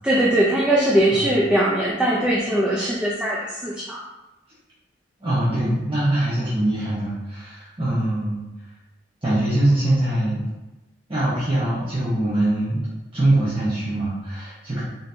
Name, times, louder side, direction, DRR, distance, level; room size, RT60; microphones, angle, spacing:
voice 1, 0.0-4.0, right 1 dB, 5° right, -5 dB, 0.5 m, -20 dB
voice 2, 5.2-8.4 9.2-10.4 11.1-12.8 13.1-14.8, right 1 dB, 30° right, -10 dB, 1.0 m, -22 dB
3.9 x 3.8 x 2.7 m, 1.0 s
head